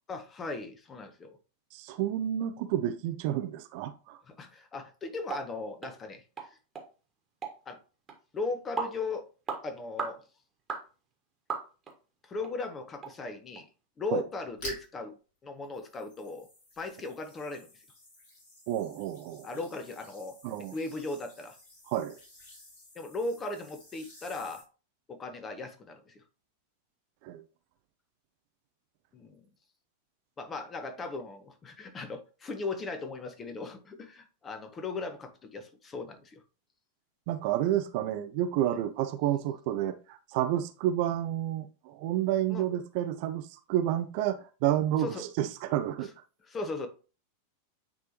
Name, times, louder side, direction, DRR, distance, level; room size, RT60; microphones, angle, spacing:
voice 1, 0.1-1.4 4.3-6.6 7.7-7.8 8.3-9.2 9.6-10.2 12.2-13.7 14.0-15.1 15.4-16.5 16.8-17.8 19.4-20.4 20.7-21.6 22.9-24.6 25.1-26.2 29.1-29.4 30.4-36.4 38.6-38.8 42.5-42.6 45.0-45.2 46.5-46.9, left 3 dB, 20° left, 1.0 m, -37 dB
voice 2, 1.7-4.2 14.1-14.2 18.7-19.6 20.4-20.8 21.9-22.1 27.2-27.4 37.3-46.1, right 12 dB, 45° right, 0.6 m, -30 dB
sound 1, 5.3-5.4 5.8-5.9 6.4-6.5 6.7-6.9 7.4-7.6 8.1-8.2 8.8-9.0 9.5-9.6 10.0-10.2 10.7-10.8 11.5-11.9 12.4-12.5 13.0-13.1 13.6-13.7, right 5 dB, 20° right, 1.5 m, -35 dB
sound 2, 14.5-15.0 15.6-24.6, left 1 dB, 50° left, 3.0 m, -50 dB
9.4 x 3.4 x 2.9 m
figure-of-eight pair, 90°, 0 cm